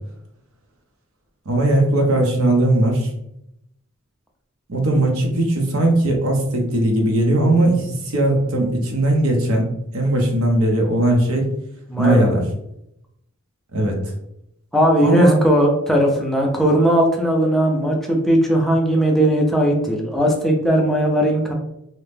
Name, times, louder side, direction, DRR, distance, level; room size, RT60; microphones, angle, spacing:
voice 1, 1.5-3.1 4.7-11.5 12.0-12.4 13.7-14.0 15.0-15.4, right 1 dB, 80° right, 1 dB, 0.7 m, -18 dB
voice 2, 11.9-12.3 14.7-21.5, right 1 dB, ahead, 0 dB, 0.4 m, -18 dB
2.8 x 2.0 x 3.3 m, 0.81 s
head